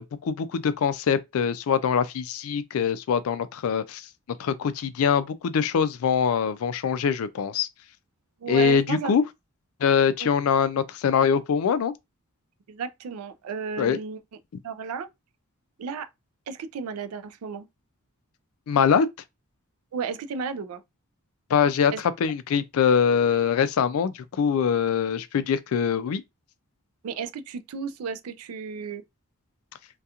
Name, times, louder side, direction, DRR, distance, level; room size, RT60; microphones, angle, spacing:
voice 1, 0.0-4.1 4.4-7.7 8.5-9.2 9.8-11.9 13.8-14.0 18.7-19.1 21.5-21.9 22.2-26.2, left 7 dB, 70° left, 0.3 m, -23 dB
voice 2, 8.4-9.1 10.2-10.3 12.7-14.2 14.6-15.1 15.8-16.1 16.5-17.7 19.9-20.8 21.9-22.0 27.0-29.0, right 6 dB, 80° right, 0.4 m, -33 dB
2.4 x 2.2 x 2.8 m
head